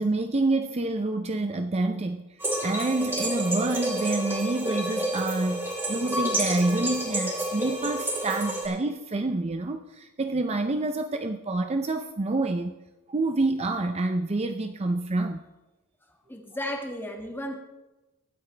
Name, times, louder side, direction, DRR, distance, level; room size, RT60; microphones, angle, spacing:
voice 1, 0.0-12.8 13.1-15.4, right 2 dB, 30° right, 7 dB, 0.5 m, -27 dB
sound 1, 2.4-8.7, right 1 dB, 10° right, 3.7 m, -29 dB
voice 2, 16.3-17.5, left 1 dB, 10° left, 2 dB, 1.8 m, -34 dB
23.5 x 8.9 x 3.3 m, 1.1 s
head